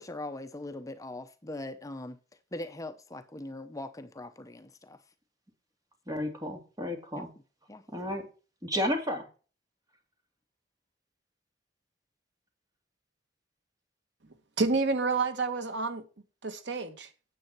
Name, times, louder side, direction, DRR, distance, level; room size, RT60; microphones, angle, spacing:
voice 1, 0.0-2.2 2.5-5.0 7.1-7.2 7.7-7.9, left 2 dB, 20° left, 0.7 m, -41 dB
voice 2, 6.1-7.3 7.9-8.3 8.6-9.3, left 1 dB, 20° right, 2.4 m, -32 dB
voice 3, 14.6-16.0 16.4-17.1, right 3 dB, 75° right, 1.4 m, -29 dB
9.4 x 8.2 x 4.5 m
head